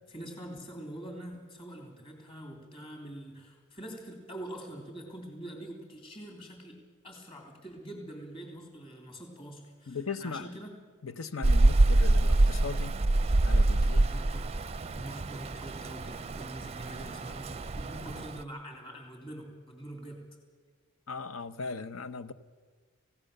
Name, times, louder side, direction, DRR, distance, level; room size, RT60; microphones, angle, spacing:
voice 1, 0.1-10.7 13.7-20.2, right 1 dB, 25° left, 1 dB, 3.1 m, -45 dB
voice 2, 9.9-10.5 11.0-13.0 13.4-14.0 21.1-22.3, left 5 dB, 80° left, 12 dB, 0.9 m, -38 dB
Rain, 11.4-18.4, right 2 dB, 30° right, 0.5 m, -26 dB
27.5 x 16.5 x 6.7 m, 1.5 s
head